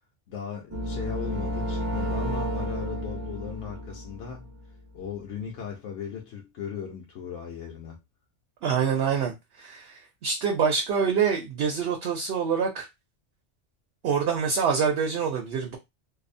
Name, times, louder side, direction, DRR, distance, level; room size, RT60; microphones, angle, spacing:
voice 1, 0.3-4.5 4.9-8.0, left 7 dB, 90° left, 1.0 m, -37 dB
sound 1, 0.7-4.7, equal, 20° right, 0.4 m, -31 dB
voice 2, 8.6-12.9 14.0-15.8, right 6 dB, 65° right, 0.8 m, -26 dB
2.6 x 2.0 x 2.5 m
omnidirectional pair, 1.2 m